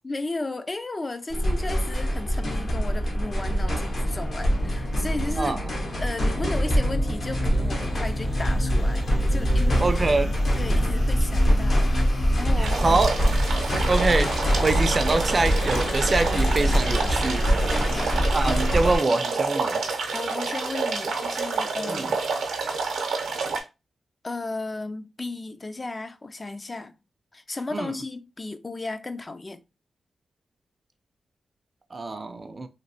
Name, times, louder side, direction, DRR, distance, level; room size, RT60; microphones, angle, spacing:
voice 1, 0.0-5.6 6.0-9.9 10.5-11.9 12.4-13.0 17.7-18.2 20.1-22.2 24.2-26.9 27.3-29.6, left 2 dB, 35° left, 0.3 m, -34 dB
sound 1, 1.3-19.0, equal, 65° left, 0.9 m, -24 dB
voice 2, 9.8-10.4 12.6-13.1 13.9-14.3 14.6-17.8 18.2-19.8 21.9-22.1 27.7-27.9 31.9-32.7, right 3 dB, 40° right, 0.4 m, -25 dB
sound 2, 12.6-23.6, right 4 dB, 90° right, 0.6 m, -29 dB
3.1 x 2.4 x 2.6 m
cardioid pair, 55°, 0 cm